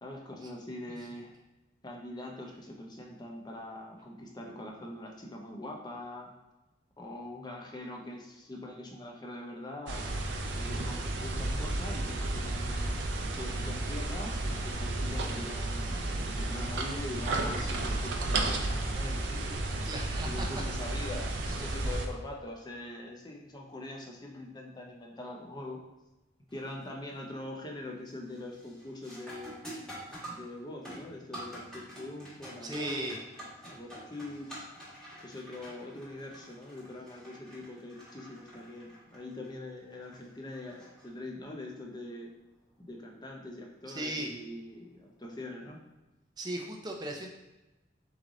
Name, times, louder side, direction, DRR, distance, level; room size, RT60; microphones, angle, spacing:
voice 1, 0.0-1.3 1.8-6.3 7.0-10.1 10.5-13.0 13.4-19.7 20.2-25.8 26.5-29.5 30.3-33.1 33.6-34.7 35.2-42.3 42.8-45.8, left 1 dB, 25° left, 0 dB, 0.7 m, -43 dB
sound 1, 9.9-22.1, right 2 dB, 80° right, 0.5 m, -32 dB
voice 2, 19.8-20.6 21.6-21.8 32.6-33.2 43.9-44.3 46.4-47.3, right 1 dB, 25° right, 1 dB, 0.5 m, -37 dB
sound 2, 26.5-26.9 27.3-27.7 28.1-41.6 44.1-44.2 45.0-45.3, right 1 dB, 5° left, 1.2 m, -48 dB
3.7 x 3.2 x 3.8 m, 1.0 s
head